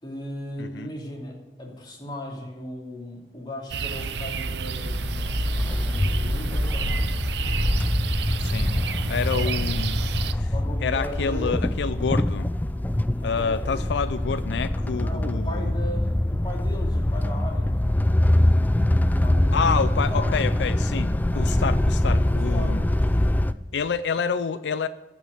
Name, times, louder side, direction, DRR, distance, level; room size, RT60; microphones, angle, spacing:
voice 1, 0.0-6.9 9.4-9.6 10.5-11.7 13.1-14.0 14.9-17.8 19.2-19.8 20.1-20.4 22.5-22.8, left 1 dB, 25° left, -1 dB, 2.9 m, -37 dB
voice 2, 0.6-0.9 8.4-8.7 9.1-10.0 10.4-10.5 10.8-12.5 13.2-15.7 19.5-22.8 23.7-24.9, left 5 dB, 75° left, 13 dB, 0.4 m, -28 dB
sound 1, 3.7-10.3, right 5 dB, 70° right, 0.6 m, -31 dB
sound 2, 4.7-23.5, left 1 dB, 10° left, 0.3 m, -24 dB
14.5 x 6.1 x 7.8 m, 1.1 s
head